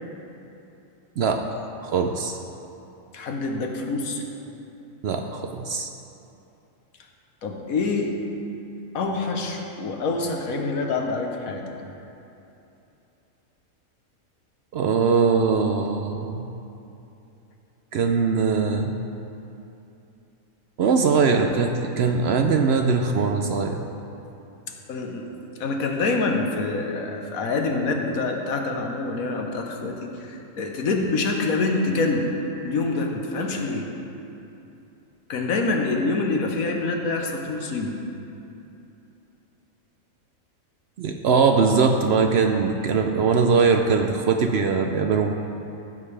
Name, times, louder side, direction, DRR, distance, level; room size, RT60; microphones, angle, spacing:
voice 1, 1.8-2.4 5.0-5.9 14.7-16.5 17.9-18.9 20.8-23.8 41.0-45.3, right 5 dB, 65° right, 4 dB, 0.7 m, -21 dB
voice 2, 3.1-4.2 7.4-8.1 8.9-11.6 24.9-25.3 25.6-32.3 32.6-33.9 35.3-38.0, left 3 dB, 85° left, 2 dB, 1.4 m, -26 dB
15.0 x 7.3 x 3.3 m, 2.9 s
omnidirectional pair, 1.4 m